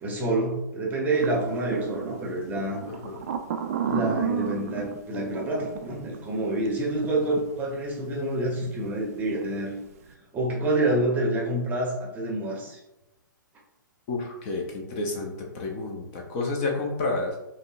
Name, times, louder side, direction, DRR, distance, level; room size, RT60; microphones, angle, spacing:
voice 1, 0.0-2.8 3.9-9.7 10.3-12.8, right 1 dB, 15° right, -2 dB, 0.8 m, -27 dB
sound 1, 1.1-7.1 7.4-7.5 8.6-8.9 9.2-9.4, right 8 dB, 45° right, 0.4 m, -32 dB
voice 2, 2.8-3.2 14.1-17.4, left 3 dB, 35° left, 0 dB, 0.8 m, -30 dB
5.3 x 2.2 x 2.6 m, 0.95 s
figure-of-eight pair, 115°, 11 cm